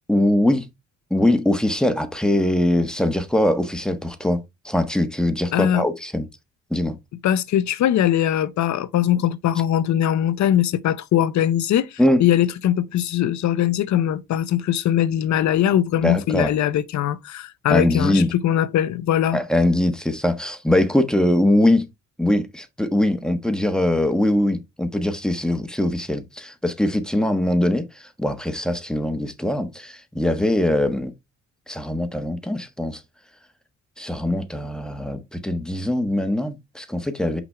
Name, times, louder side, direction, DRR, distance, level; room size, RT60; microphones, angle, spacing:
voice 1, 0.1-0.7 1.1-6.2 6.7-7.0 12.0-12.2 16.0-16.5 17.7-18.3 19.3-21.9 22.2-31.1 31.7-33.0 34.0-37.4, left 1 dB, ahead, 1.2 m, -22 dB
voice 2, 5.5-5.8 7.2-19.4, left 11 dB, 70° left, 0.7 m, -21 dB
5.9 x 5.3 x 3.3 m
cardioid pair, 90°, 30 cm